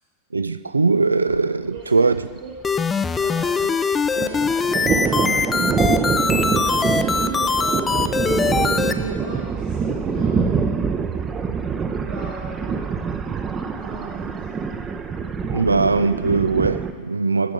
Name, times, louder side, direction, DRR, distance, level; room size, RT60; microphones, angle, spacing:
voice 1, 0.3-2.3 15.4-17.5, right 3 dB, 80° right, 0.3 m, -20 dB
Thunder, 1.3-1.5 1.8-1.9 2.2-3.7 3.9-16.9, right 5 dB, 20° right, 0.6 m, -25 dB
voice 2, 1.7-2.1 2.4-2.5 3.2-10.8 12.1-13.0 13.8-14.5, right 3 dB, 65° right, 2.1 m, -36 dB
sound 1, 2.6-8.9, left 5 dB, 15° left, 0.4 m, -22 dB
15.5 x 5.8 x 3.9 m
figure-of-eight pair, 90°, 0 cm